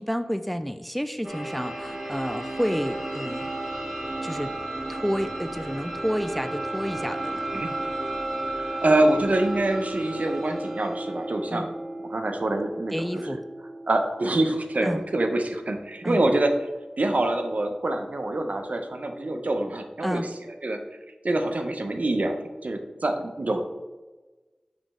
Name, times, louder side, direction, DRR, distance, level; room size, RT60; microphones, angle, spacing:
voice 1, 0.0-3.5 4.2-4.5 4.9-7.5 11.5-11.7 12.9-13.4 14.8-15.0 16.0-16.2 20.0-20.3, equal, ahead, 9 dB, 0.3 m, -30 dB
sound 1, 1.2-16.9, right 2 dB, 20° right, 1.1 m, -34 dB
voice 2, 8.5-11.7 12.0-13.4 13.9-16.6 17.0-20.3 20.6-20.8 21.2-22.4 22.6-23.6, right 2 dB, 65° right, 5 dB, 0.7 m, -25 dB
5.2 x 5.2 x 3.6 m, 1.2 s
wide cardioid pair, 40°, 3 cm